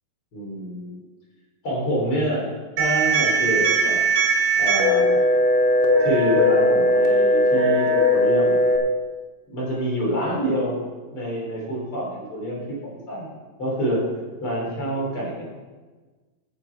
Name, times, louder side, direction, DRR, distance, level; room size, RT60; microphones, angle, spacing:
voice 1, 0.3-1.0 1.6-2.5 2.8-4.0 4.6-5.3 6.0-8.6 9.5-10.8 11.1-13.3 13.6-14.0 14.4-15.5, equal, 35° left, -3 dB, 3.7 m, -26 dB
sound 1, 2.8-8.8, equal, 70° right, 3.0 m, -19 dB
14.0 x 8.0 x 4.7 m, 1.3 s
omnidirectional pair, 4.4 m